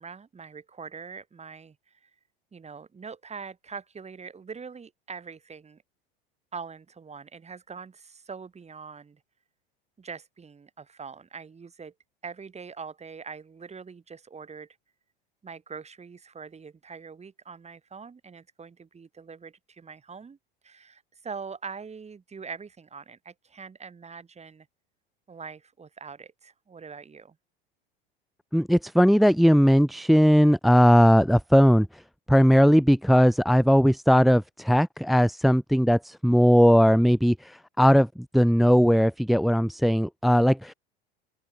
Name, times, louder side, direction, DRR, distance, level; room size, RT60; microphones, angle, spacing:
voice 1, 0.0-2.1 2.5-5.8 6.5-9.2 10.0-11.9 12.2-14.8 15.4-20.4 20.6-24.7 25.3-27.4, right 5 dB, 20° right, 5.9 m, -43 dB
voice 2, 28.5-31.9 32.3-38.1 38.3-40.7, equal, ahead, 0.8 m, -19 dB
open air
hypercardioid pair, 80°, 29 cm